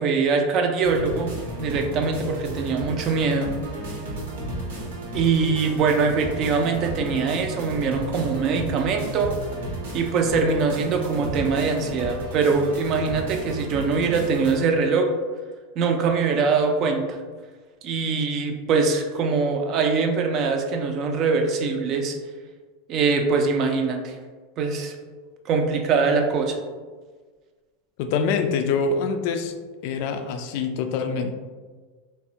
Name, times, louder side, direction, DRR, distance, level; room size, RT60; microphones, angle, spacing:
voice 1, 0.0-1.3 1.6-3.5 5.1-9.3 9.9-15.1 15.8-17.2 17.8-22.2 22.9-24.1 24.6-24.9 25.5-26.6, right 4 dB, 45° right, 4 dB, 0.4 m, -23 dB
sound 1, 0.8-14.6, right 1 dB, 90° right, 0.8 m, -33 dB
voice 2, 28.0-29.5 29.8-31.3, left 5 dB, 60° left, 7 dB, 0.3 m, -25 dB
3.3 x 2.1 x 2.7 m, 1.4 s
supercardioid pair, 125°, 0 cm